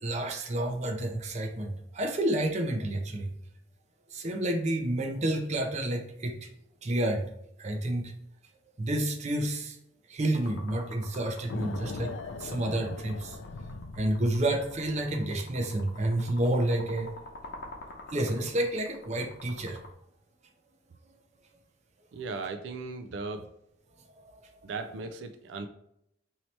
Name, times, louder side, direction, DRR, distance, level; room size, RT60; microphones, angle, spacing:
voice 1, 0.0-3.3 4.1-6.5 6.8-7.3 7.6-8.1 8.8-9.8 10.1-12.1 12.4-13.4 14.0-17.1 18.1-19.8, right 1 dB, 40° right, 3 dB, 0.6 m, -29 dB
sound 1, 10.3-19.9, left 2 dB, 60° left, 0.9 m, -47 dB
sound 2, 11.5-15.2, left 4 dB, 90° left, 0.4 m, -41 dB
voice 2, 22.1-23.5 24.6-25.7, right 3 dB, 85° right, 7 dB, 0.4 m, -37 dB
3.1 x 2.8 x 4.2 m, 0.76 s
head